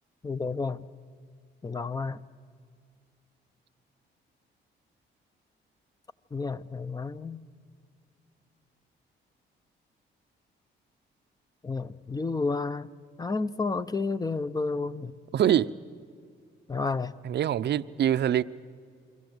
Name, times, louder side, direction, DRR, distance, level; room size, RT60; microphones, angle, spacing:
voice 1, 0.2-0.9 1.6-2.2 6.3-7.4 11.6-12.9 13.2-15.2 16.7-17.2, left 4 dB, 20° left, 0.8 m, -31 dB
voice 2, 15.3-15.7 17.2-18.4, right 10 dB, 60° right, 0.7 m, -24 dB
28.5 x 22.5 x 8.1 m
cardioid pair, 90°, 20 cm